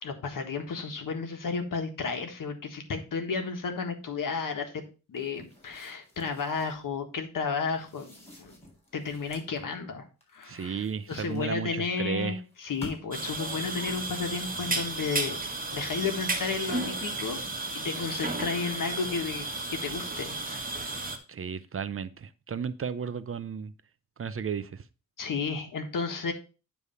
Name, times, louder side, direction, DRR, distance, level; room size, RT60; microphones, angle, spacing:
voice 1, 0.0-4.8 5.1-8.6 8.9-10.0 10.3-15.4 15.7-17.4 17.7-21.1 25.2-26.3, left 5 dB, 75° left, 1.5 m, -33 dB
sound 1, 5.1-6.8 7.7-9.6 10.2-11.8 12.5-13.3, left 1 dB, 20° left, 4.1 m, -49 dB
voice 2, 10.4-12.4 21.3-23.7 24.2-24.8, right 6 dB, 40° right, 0.6 m, -34 dB
sound 2, 13.1-21.2, right 2 dB, 25° right, 1.3 m, -33 dB
9.5 x 3.4 x 5.5 m
wide cardioid pair, 100°, 33 cm